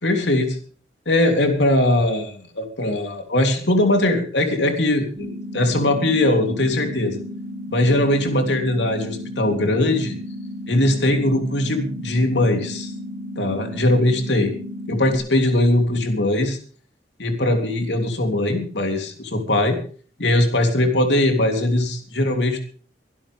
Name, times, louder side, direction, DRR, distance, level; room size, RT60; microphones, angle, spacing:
voice 1, 0.0-0.6 1.0-7.2 7.7-10.2 10.7-12.9 13.4-14.5 14.9-16.6 17.2-19.8 20.2-22.6, left 1 dB, 70° left, 4 dB, 3.3 m, -20 dB
sound 1, 5.2-15.2, equal, 50° right, 3.4 m, -34 dB
24.0 x 12.0 x 3.5 m, 0.42 s
head